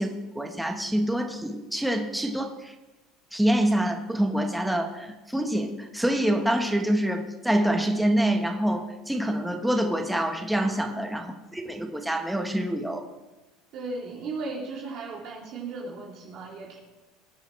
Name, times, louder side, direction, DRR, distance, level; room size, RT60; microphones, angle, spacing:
voice 1, 0.0-2.7 3.3-13.0, right 1 dB, 5° right, 4 dB, 1.1 m, -26 dB
voice 2, 10.6-11.0 13.7-16.8, right 3 dB, 50° right, -4 dB, 2.8 m, -36 dB
20.0 x 10.5 x 3.2 m, 1.1 s
cardioid pair, 155°, 0 cm